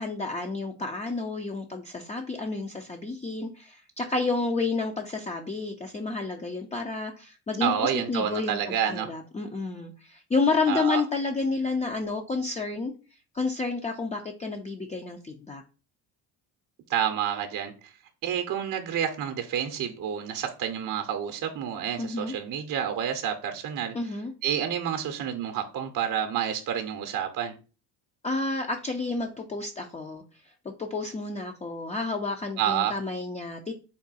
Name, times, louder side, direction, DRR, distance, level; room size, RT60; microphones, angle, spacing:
voice 1, 0.0-12.9 13.3-15.6 22.0-22.3 23.9-24.3 28.2-30.2 30.6-33.7, left 3 dB, 15° left, 3 dB, 0.4 m, -30 dB
voice 2, 7.6-9.1 10.7-11.0 16.9-17.9 18.2-23.9 24.4-27.5 32.6-32.9, right 9 dB, 40° right, 6 dB, 0.7 m, -29 dB
3.7 x 2.2 x 4.0 m, 0.34 s
supercardioid pair, 75°, 49 cm